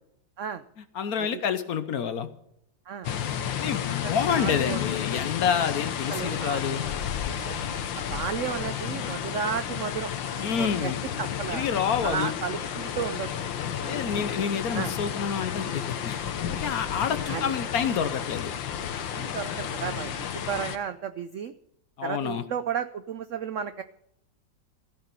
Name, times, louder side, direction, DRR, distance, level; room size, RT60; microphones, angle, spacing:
voice 1, 0.9-2.3 3.6-6.8 10.4-11.0 11.5-12.3 13.9-16.2 16.5-18.5 22.0-22.4, left 7 dB, 60° left, 11 dB, 1.2 m, -28 dB
sound 1, 3.0-20.8, left 9 dB, 80° left, 1.7 m, -32 dB
voice 2, 4.0-4.8 6.1-6.8 7.4-7.6 7.9-10.1 10.4-10.9 11.2-11.7 12.0-13.3 13.8-14.0 14.7-14.9 17.3-17.5 19.0-21.5 22.0-23.8, right 7 dB, 85° right, 11 dB, 0.6 m, -33 dB
15.0 x 10.0 x 5.3 m, 0.76 s
omnidirectional pair, 2.0 m